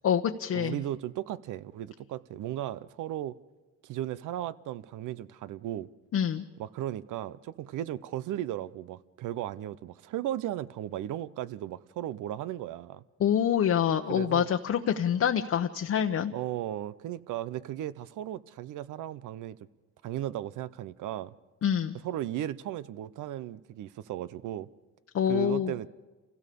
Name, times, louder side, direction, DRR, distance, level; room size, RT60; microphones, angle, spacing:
voice 1, 0.0-0.8 6.1-6.4 13.2-16.3 21.6-22.0 25.1-25.7, left 9 dB, 50° left, 0.9 m, -26 dB
voice 2, 0.5-3.4 3.8-5.9 6.6-13.0 14.1-14.5 16.3-19.6 20.0-21.3 22.0-24.7 25.2-25.9, right 12 dB, 85° right, 0.8 m, -36 dB
28.5 x 16.5 x 6.9 m
cardioid pair, 90°, 30 cm